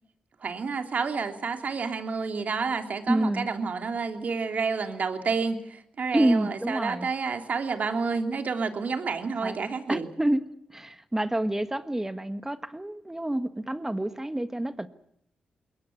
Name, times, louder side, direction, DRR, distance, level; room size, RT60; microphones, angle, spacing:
voice 1, 0.4-10.1, right 5 dB, 60° right, 6 dB, 3.0 m, -29 dB
voice 2, 3.1-3.5 6.1-7.1 9.4-9.6 9.9-10.4 10.7-14.9, right 1 dB, 15° right, 11 dB, 1.5 m, -28 dB
22.0 x 18.5 x 9.5 m, 0.74 s
supercardioid pair, 50°, 3 cm